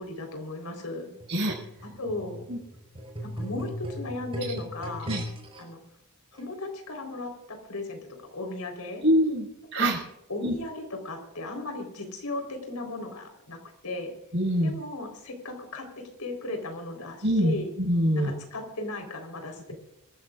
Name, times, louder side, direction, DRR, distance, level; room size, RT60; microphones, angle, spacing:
voice 1, 0.0-1.1 2.0-2.4 3.4-5.1 5.6-5.8 6.3-9.0 9.7-9.9 10.3-14.1 14.6-15.9 16.2-17.7 18.1-19.7, left 2 dB, 90° left, 4 dB, 4.2 m, -36 dB
sound 1, 1.2-5.6 6.4-6.5, equal, 25° right, 4.8 m, -38 dB
voice 2, 9.0-10.0 10.4-10.5 14.3-14.7 17.2-18.3, equal, 55° right, -4 dB, 6.1 m, -24 dB
25.5 x 15.0 x 2.5 m, 0.89 s
head